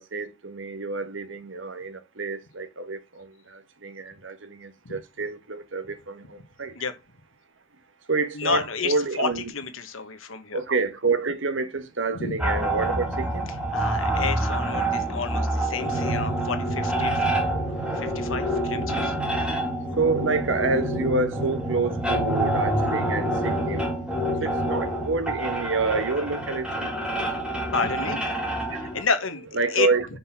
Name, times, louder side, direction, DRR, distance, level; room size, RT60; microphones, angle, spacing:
voice 1, 0.0-6.7 8.1-9.4 10.5-13.5 20.0-23.9 24.4-26.9 29.5-30.1, right 3 dB, 65° right, 1.2 m, -28 dB
voice 2, 8.3-10.6 12.1-12.3 13.7-19.2 19.4-19.6 23.1-23.2 24.4-24.5 27.7-28.2 28.7-29.4 29.7-29.9, left 5 dB, 85° left, 1.4 m, -30 dB
sound 1, 12.4-29.0, right 1 dB, 5° right, 2.1 m, -27 dB
5.8 x 5.4 x 5.9 m
head